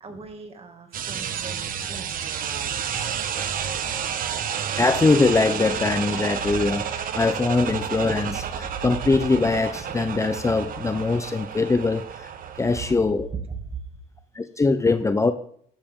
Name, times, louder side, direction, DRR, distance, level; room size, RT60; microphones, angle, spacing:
voice 1, 0.0-2.2 13.3-13.6, right 5 dB, 35° right, 2.3 m, -38 dB
sound 1, 0.9-12.9, right 8 dB, 55° right, 1.4 m, -30 dB
voice 2, 4.8-12.3 12.6-13.3 14.3-15.3, left 3 dB, 15° left, 0.7 m, -22 dB
14.0 x 11.5 x 3.8 m
cardioid pair, 110°, 17 cm